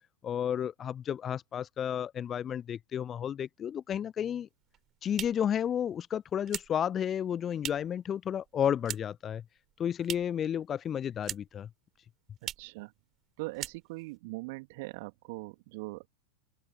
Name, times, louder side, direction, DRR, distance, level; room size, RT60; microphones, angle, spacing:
voice 1, 0.2-4.5 5.0-9.4 9.8-11.7, left 9 dB, 25° left, 0.5 m, -32 dB
sound 1, 4.6-8.0 8.3-9.3 9.6-10.5 10.8-11.7 11.9-12.0 12.4-12.8 13.1-13.3 13.5-14.2, right 11 dB, 30° right, 7.9 m, -41 dB
voice 2, 12.4-12.9 13.4-16.1, right 25 dB, 50° right, 3.3 m, -41 dB
open air
figure-of-eight pair, 90°, 0 cm